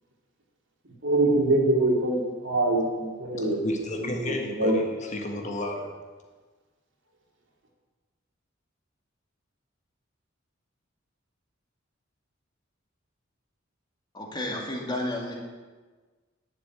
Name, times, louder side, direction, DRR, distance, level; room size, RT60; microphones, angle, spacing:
voice 1, 1.0-3.6 4.0-4.9, right 2 dB, 65° right, 2.9 m, -24 dB
voice 2, 3.6-4.8 5.1-5.9, left 1 dB, 35° left, 1.6 m, -31 dB
voice 3, 14.1-15.3, left 1 dB, 20° left, 2.4 m, -31 dB
11.0 x 7.5 x 9.5 m
head